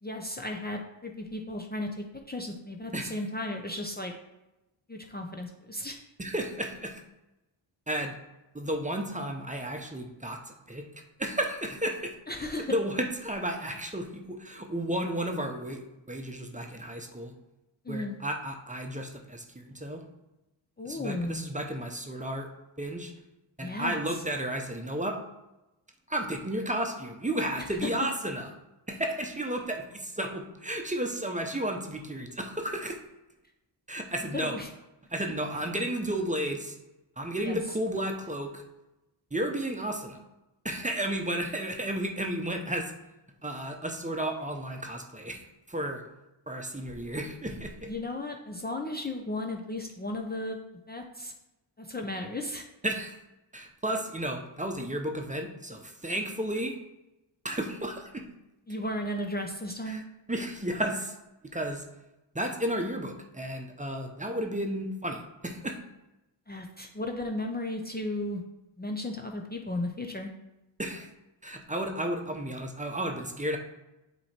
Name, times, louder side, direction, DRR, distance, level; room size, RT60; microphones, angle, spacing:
voice 1, 0.0-4.1 4.9-6.0 12.3-12.7 17.8-18.2 20.8-21.5 23.6-24.2 27.6-27.9 34.2-34.7 37.4-37.6 47.9-50.6 50.9-51.3 51.8-52.6 58.7-60.0 66.5-68.4 68.8-70.3, left 1 dB, 20° left, 1 dB, 0.7 m, -35 dB
voice 2, 6.2-7.0 7.9-8.1 8.5-10.9 11.2-12.1 12.7-15.8 16.1-17.3 17.9-20.0 20.8-22.5 22.8-23.1 23.6-25.2 26.1-28.5 28.9-33.0 33.9-34.6 35.1-36.8 37.2-38.6 39.3-40.2 40.6-42.9 43.4-46.0 46.5-47.9 52.8-53.2 53.5-56.7 57.4-58.2 59.9-60.0 60.3-61.1 61.4-61.9 62.3-65.8 70.8-71.1 71.4-73.6, right 1 dB, 15° right, 3 dB, 0.9 m, -33 dB
7.8 x 3.1 x 4.3 m, 0.96 s
cardioid pair, 70°, 50 cm